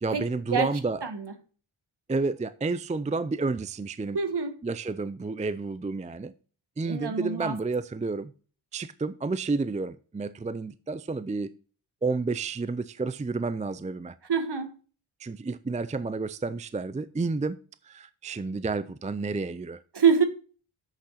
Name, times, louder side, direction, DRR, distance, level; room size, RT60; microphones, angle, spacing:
voice 1, 0.0-1.0 2.1-4.2 4.6-6.3 6.8-8.3 8.7-11.5 12.0-14.2 15.2-17.6 17.9-19.8, right 3 dB, 15° right, 0.4 m, -30 dB
voice 2, 1.0-1.3 4.1-4.5 6.8-7.6 14.3-14.7 19.9-20.2, right 6 dB, 55° right, 1.7 m, -25 dB
7.9 x 6.6 x 5.6 m
wide cardioid pair, 80°, 48 cm